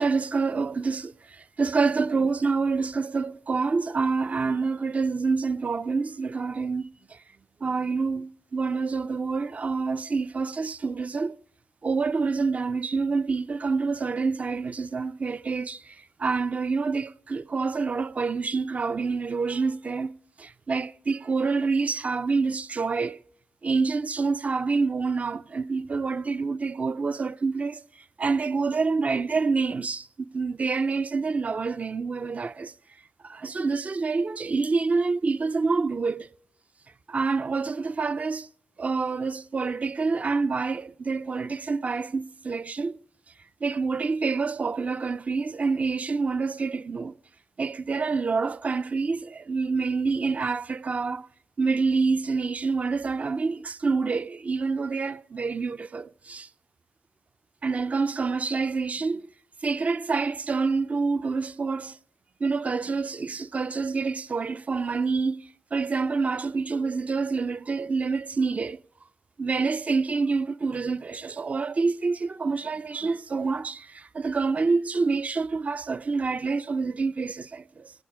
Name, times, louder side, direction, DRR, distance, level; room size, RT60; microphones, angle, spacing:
voice 1, 0.0-7.2 7.6-11.4 11.8-20.1 20.4-23.2 23.6-27.8 28.2-32.7 33.2-36.3 37.1-38.5 38.8-43.0 43.6-47.1 47.6-51.3 51.6-56.5 57.6-59.3 59.6-62.0 62.4-68.8 69.4-77.9, right 4 dB, 50° right, 0.5 m, -27 dB
18.5 x 8.6 x 4.8 m
supercardioid pair, 45°, 3 cm